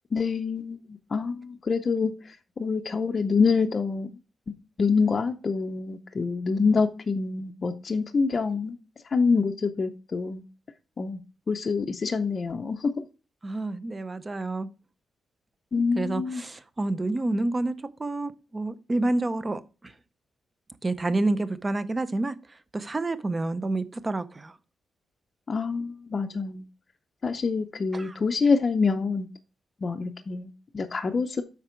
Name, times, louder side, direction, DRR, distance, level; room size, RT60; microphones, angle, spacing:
voice 1, 0.1-4.1 4.8-8.8 9.1-10.4 11.0-11.2 11.5-13.1 15.7-16.4 25.5-26.6 27.2-29.3 29.8-31.4, left 4 dB, 30° left, 0.6 m, -26 dB
voice 2, 13.4-14.7 16.0-17.7 18.0-19.6 20.8-22.3 22.7-24.5 27.9-28.1, right 2 dB, 20° right, 0.6 m, -28 dB
8.1 x 5.9 x 4.4 m
wide cardioid pair, 170°, 0 cm